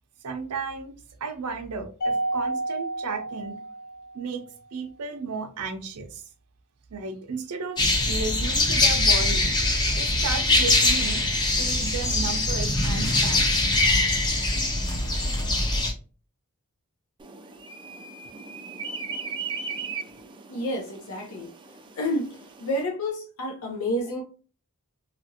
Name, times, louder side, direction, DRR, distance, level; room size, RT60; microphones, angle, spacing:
voice 1, 0.2-0.9 1.2-3.6 4.1-6.2 6.9-9.6 10.0-11.3 11.5-13.4, right 4 dB, 85° right, 6 dB, 0.6 m, -34 dB
Mallet percussion, 2.0-4.4, right 2 dB, 45° left, 1.1 m, -30 dB
sound 1, 7.8-15.9, left 2 dB, 20° left, 0.6 m, -22 dB
sound 2, 17.2-22.8, right 5 dB, 20° right, 0.3 m, -38 dB
voice 2, 20.5-21.5 21.9-24.2, left 1 dB, 70° left, 0 dB, 0.6 m, -29 dB
2.9 x 2.4 x 2.7 m, 0.38 s
head